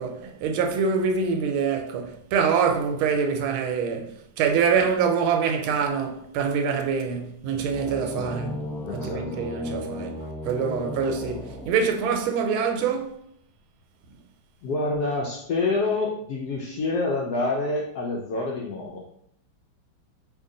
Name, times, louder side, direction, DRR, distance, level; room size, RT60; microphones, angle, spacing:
voice 1, 0.0-13.2, right 6 dB, 90° right, 1.4 m, -25 dB
sound 1, 7.5-12.3, left 2 dB, ahead, 0.9 m, -36 dB
voice 2, 7.9-9.4 14.6-19.0, left 3 dB, 80° left, 0.8 m, -28 dB
2.8 x 2.8 x 3.7 m
omnidirectional pair, 2.2 m